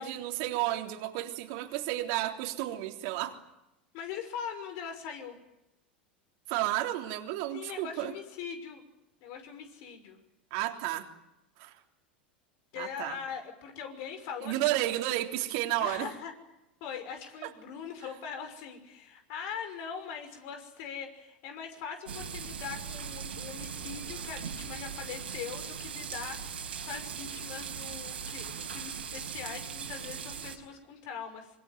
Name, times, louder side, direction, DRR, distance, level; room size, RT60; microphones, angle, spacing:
voice 1, 0.0-3.4 6.5-8.1 10.5-11.1 11.6-11.7 12.8-13.2 14.4-16.1 17.4-17.5, right 15 dB, 55° right, 4 dB, 3.4 m, -32 dB
voice 2, 3.9-5.4 7.5-8.8 9.2-10.2 12.7-14.8 15.8-16.3 16.8-31.5, left 7 dB, 55° left, 7 dB, 5.9 m, -41 dB
sound 1, 22.1-30.6, right 7 dB, 80° right, 4.8 m, -39 dB
25.5 x 24.0 x 9.3 m, 0.91 s
hypercardioid pair, 90°, 6 cm